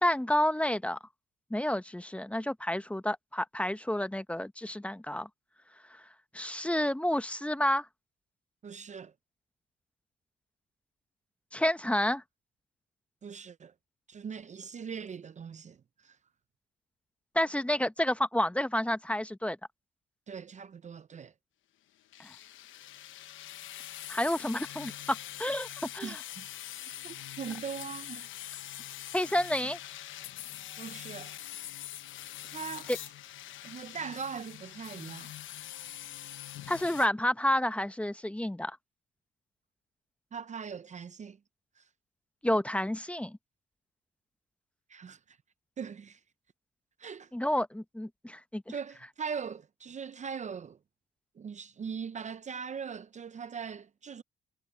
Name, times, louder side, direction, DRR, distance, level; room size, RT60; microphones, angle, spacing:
voice 1, 0.0-1.0 1.5-5.3 6.3-7.9 11.5-12.2 17.3-19.6 22.2-22.3 24.1-25.7 25.9-26.2 29.1-29.8 32.9-33.0 36.7-38.8 42.4-43.4 47.3-48.6, left 1 dB, 5° left, 0.8 m, -30 dB
voice 2, 8.6-9.1 13.2-13.7 14.1-16.2 20.3-21.3 26.0-26.5 27.0-28.3 28.6-28.7 30.8-31.3 32.5-32.9 33.6-35.3 40.3-41.4 41.8-41.9 44.9-45.4 45.8-46.2 47.0-47.3 48.7-50.8 51.4-54.2, right 6 dB, 35° right, 0.6 m, -40 dB
sound 1, 22.1-37.1, left 13 dB, 80° left, 1.0 m, -44 dB
cardioid pair, 90°, 20 cm